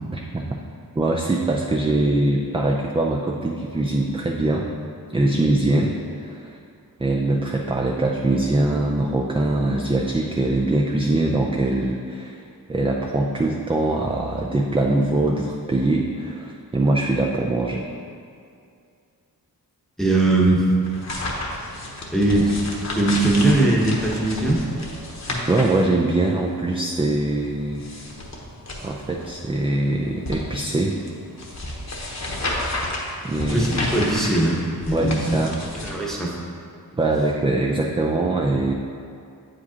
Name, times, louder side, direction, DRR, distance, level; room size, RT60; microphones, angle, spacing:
voice 1, 0.1-0.5 1.0-4.7 5.1-6.6 7.0-12.4 12.7-17.8 25.5-27.8 28.8-31.0 33.2-33.7 34.9-35.5 36.9-38.7, right 2 dB, 15° right, 0 dB, 0.4 m, -22 dB
voice 2, 20.0-20.6 22.1-22.5 23.0-24.6 33.5-35.4 35.8-36.3, right 2 dB, ahead, -4 dB, 1.0 m, -20 dB
sound 1, 20.8-35.9, left 1 dB, 45° left, 1.1 m, -32 dB
8.1 x 5.1 x 2.8 m, 2.4 s
wide cardioid pair, 70°, 37 cm